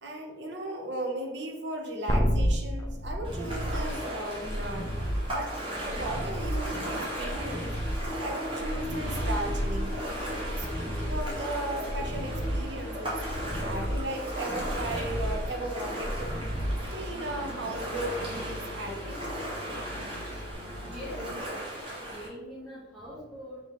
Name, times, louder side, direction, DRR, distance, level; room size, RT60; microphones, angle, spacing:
voice 1, 0.0-4.9 5.3-5.5 6.0-7.8 8.2-9.9 10.5-13.2 13.6-16.4 16.9-19.2, right 1 dB, 65° right, 2 dB, 0.7 m, -36 dB
sound 1, 2.1-17.4 20.5-20.6, equal, 15° left, 0.4 m, -32 dB
Ocean, 3.2-22.3, right 1 dB, 25° right, 1.1 m, -37 dB
sound 2, 7.2-21.4, left 1 dB, 75° left, 0.7 m, -41 dB
voice 2, 20.8-21.3 22.1-23.6, left 1 dB, ahead, -11 dB, 0.9 m, -42 dB
3.7 x 3.4 x 3.5 m, 1.1 s
head